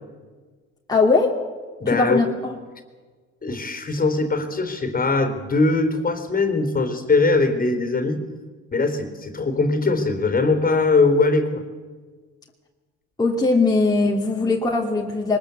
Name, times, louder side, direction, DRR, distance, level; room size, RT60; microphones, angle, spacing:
voice 1, 0.9-1.4 1.9-2.6 13.2-15.4, left 3 dB, 15° left, -1 dB, 2.8 m, -20 dB
voice 2, 1.8-2.3 3.4-8.2 8.7-11.6, left 3 dB, 30° left, 8 dB, 3.6 m, -21 dB
23.0 x 20.0 x 8.2 m, 1.5 s
supercardioid pair, 95°, 30 cm